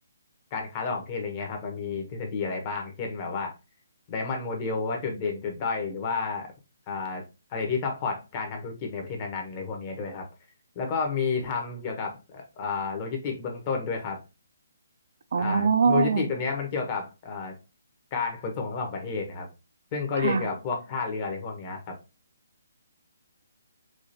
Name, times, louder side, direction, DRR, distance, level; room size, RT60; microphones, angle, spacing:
voice 1, 0.5-3.5 4.1-6.5 6.9-7.2 7.5-10.3 10.7-14.2 15.4-17.5 18.1-19.5 19.9-21.9, left 5 dB, 25° left, 0.9 m, -31 dB
voice 2, 15.3-16.2 20.2-20.5, right 5 dB, 55° right, 0.3 m, -23 dB
4.7 x 2.4 x 2.6 m
hypercardioid pair, 165°, 0 cm